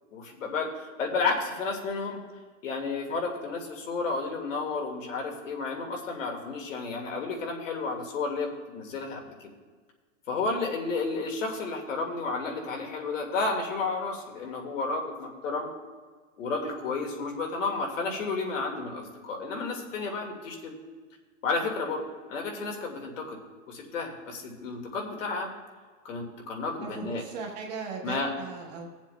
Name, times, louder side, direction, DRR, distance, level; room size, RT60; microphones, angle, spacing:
voice 1, 0.1-2.2 2.6-9.3 10.3-15.7 16.4-20.8 21.4-22.0 22.3-23.4 23.7-25.5 26.0-27.2 28.0-28.3, left 3 dB, 70° left, 2 dB, 2.0 m, -32 dB
voice 2, 26.8-28.9, right 5 dB, 30° right, 0 dB, 1.2 m, -37 dB
21.0 x 7.3 x 2.2 m, 1.5 s
supercardioid pair, 180°, 39 cm